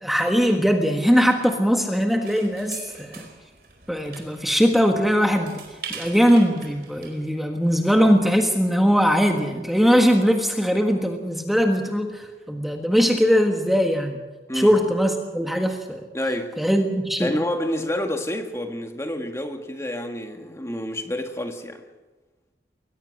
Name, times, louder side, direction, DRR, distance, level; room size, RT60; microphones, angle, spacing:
voice 1, 0.0-3.3 3.9-14.2 14.5-16.1 16.6-17.3, equal, ahead, 1.5 m, -20 dB
sound 1, 2.2-7.3, right 6 dB, 60° right, 4.5 m, -42 dB
voice 2, 16.1-16.5 17.2-21.8, left 1 dB, 15° left, 1.7 m, -28 dB
22.0 x 19.5 x 6.4 m
head